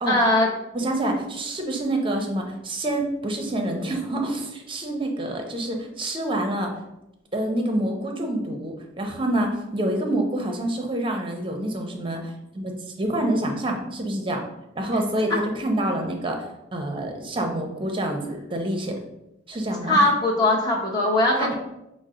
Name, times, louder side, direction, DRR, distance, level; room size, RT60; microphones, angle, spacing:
voice 1, 0.1-0.5 19.9-21.5, left 1 dB, 20° left, -2 dB, 0.8 m, -20 dB
voice 2, 0.7-6.7 7.3-12.3 12.5-14.4 14.8-16.4 16.7-19.0 19.5-20.0 21.4-21.5, right 1 dB, 30° right, 3 dB, 0.6 m, -27 dB
6.1 x 2.0 x 3.7 m, 0.89 s
head